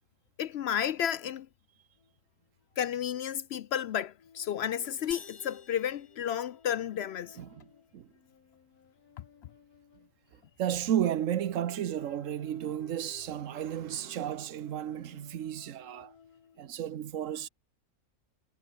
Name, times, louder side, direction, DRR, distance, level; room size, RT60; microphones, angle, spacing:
voice 1, 0.4-1.5 2.8-7.4, left 9 dB, 70° left, 0.6 m, -32 dB
sound 1, 2.0-2.1 2.4-2.6 4.2-10.8 11.2-16.8, left 7 dB, 85° left, 2.1 m, -58 dB
sound 2, 5.1-7.0, left 5 dB, 30° left, 0.9 m, -50 dB
voice 2, 10.6-16.1 16.6-17.5, right 10 dB, 60° right, 1.2 m, -33 dB
omnidirectional pair, 1.6 m